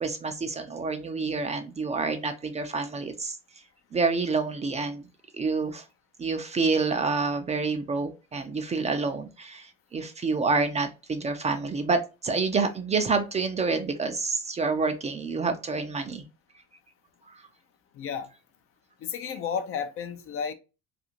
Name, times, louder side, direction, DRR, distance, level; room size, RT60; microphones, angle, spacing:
voice 1, 0.0-3.4 3.9-5.0 5.3-5.8 6.2-16.2 17.3-17.4, right 4 dB, 20° right, 0.5 m, -28 dB
voice 2, 17.9-18.3 19.0-20.5, left 7 dB, 45° left, 0.5 m, -32 dB
2.5 x 2.4 x 2.8 m
hypercardioid pair, 75°, 30 cm